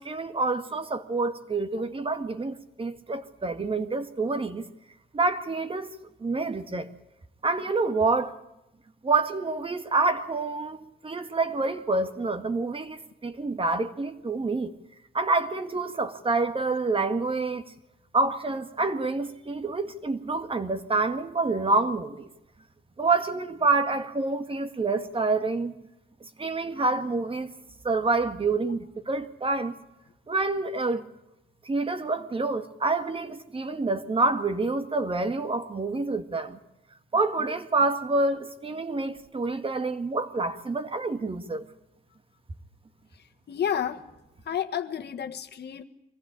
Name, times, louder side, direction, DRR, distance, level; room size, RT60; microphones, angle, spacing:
voice 1, 0.0-4.7 5.1-5.9 6.2-6.9 7.4-8.3 9.0-14.7 15.1-17.6 18.1-22.3 23.0-25.7 26.4-27.5 27.8-29.8 30.3-31.1 31.6-36.6 37.1-41.6, right 3 dB, 25° right, 1.8 m, -27 dB
voice 2, 43.5-44.0 44.5-45.8, left 9 dB, 55° left, 1.6 m, -30 dB
23.5 x 15.5 x 8.8 m
cardioid pair, 90°, 20 cm